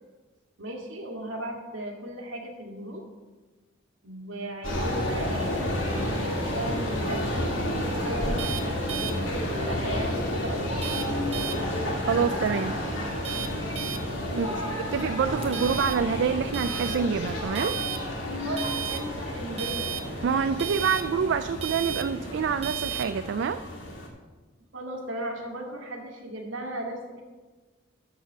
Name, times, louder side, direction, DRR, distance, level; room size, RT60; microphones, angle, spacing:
voice 1, 0.6-3.0 4.0-11.7 14.3-15.1 18.4-19.9 24.7-27.2, right 1 dB, 80° right, 1 dB, 1.9 m, -37 dB
sound 1, 4.6-24.1, left 1 dB, 75° left, 2.1 m, -31 dB
sound 2, 5.6-23.1, right 9 dB, 35° right, 0.8 m, -38 dB
voice 2, 12.1-12.8 14.4-14.5 14.8-17.8 20.2-23.6, right 6 dB, 65° right, 10 dB, 0.3 m, -26 dB
12.0 x 4.1 x 7.2 m, 1.3 s
head